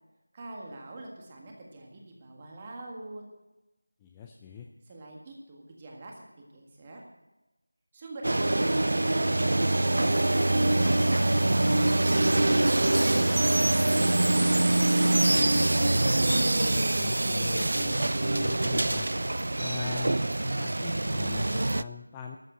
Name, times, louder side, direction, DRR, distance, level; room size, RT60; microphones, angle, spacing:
voice 1, 0.3-3.2 4.8-7.0 7.9-9.1 10.5-12.7 13.2-15.8, right 2 dB, 15° right, 0 dB, 1.7 m, -45 dB
voice 2, 4.0-4.7 16.6-19.1 19.6-22.4, left 6 dB, 10° left, 2 dB, 0.4 m, -42 dB
sound 1, 8.2-21.8, right 1 dB, 60° right, 0.4 m, -24 dB
13.5 x 7.9 x 7.7 m, 1.1 s
figure-of-eight pair, 175°, 0 cm